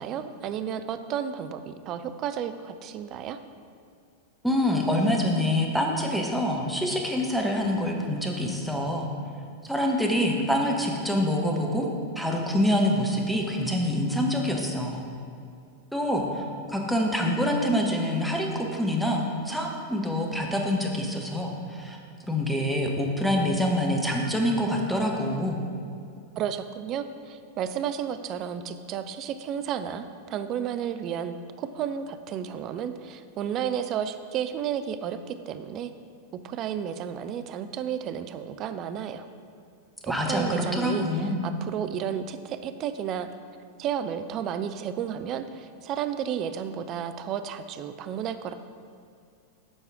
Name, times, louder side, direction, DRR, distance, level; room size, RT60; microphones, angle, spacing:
voice 1, 0.0-3.4 26.4-35.9 36.4-39.3 40.0-41.0 41.4-43.3 43.8-48.5, right 9 dB, 35° right, 10 dB, 0.4 m, -32 dB
voice 2, 4.4-9.1 9.6-11.9 12.2-15.0 15.9-22.0 22.3-25.6 40.0-41.4, left 1 dB, ahead, 0 dB, 0.9 m, -26 dB
7.5 x 4.8 x 4.7 m, 2.4 s
figure-of-eight pair, 90°, 0 cm